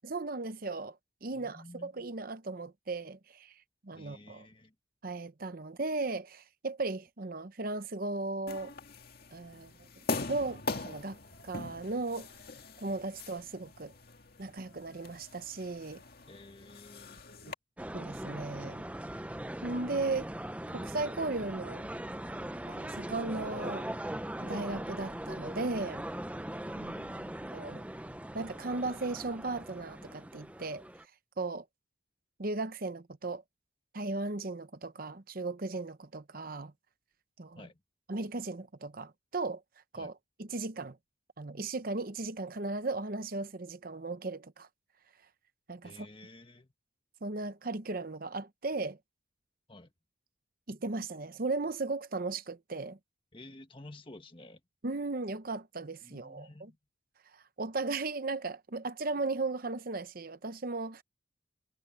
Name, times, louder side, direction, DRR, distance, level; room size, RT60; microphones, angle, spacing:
voice 1, 0.0-3.5 3.8-4.5 5.0-8.7 9.3-9.7 10.0-11.2 11.4-12.3 12.8-13.9 14.4-16.0 17.9-18.8 19.6-20.3 20.7-21.9 22.7-23.9 24.4-26.0 26.8-26.9 27.5-27.8 28.3-30.8 31.4-31.6 32.4-33.4 33.9-36.7 37.4-37.7 38.1-39.6 39.9-41.0 41.4-44.7 45.7-46.1 47.2-49.0 50.7-53.0 54.8-56.7 57.3-61.0, right 3 dB, 45° right, 0.9 m, -36 dB
voice 2, 1.3-1.9 3.9-4.7 16.3-17.2 26.7-27.5 37.6-37.7 39.9-40.1 45.8-46.7 49.7-49.9 53.3-54.6 56.0-56.8, left 1 dB, 25° left, 1.5 m, -51 dB
sound 1, 8.5-17.5, left 3 dB, 50° left, 2.2 m, -42 dB
sound 2, 17.8-31.0, right 1 dB, 5° right, 0.7 m, -40 dB
head